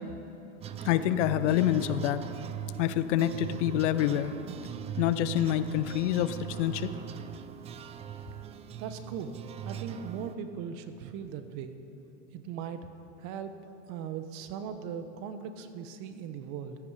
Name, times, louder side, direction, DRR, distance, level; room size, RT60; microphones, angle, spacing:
sound 1, 0.6-10.4, right 10 dB, 15° right, 0.4 m, -40 dB
voice 1, 0.8-2.2 2.8-4.3 5.0-6.9, left 12 dB, 65° left, 13 dB, 0.8 m, -27 dB
voice 2, 8.8-11.7 12.3-12.9 13.2-13.5 13.9-16.8, right 7 dB, 50° right, 9 dB, 1.1 m, -39 dB
16.0 x 13.0 x 4.9 m, 3.0 s
hypercardioid pair, 110°, 38 cm